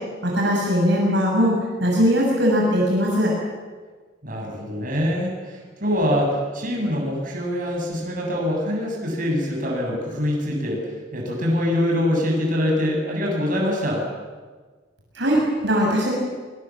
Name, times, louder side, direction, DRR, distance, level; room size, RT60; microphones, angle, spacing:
voice 1, 0.2-1.5 1.8-3.3 15.1-16.1, equal, 65° right, -2 dB, 6.5 m, -20 dB
voice 2, 4.2-10.8 11.1-14.0, left 1 dB, 45° right, -1 dB, 7.7 m, -24 dB
24.0 x 23.5 x 7.5 m, 1.4 s
head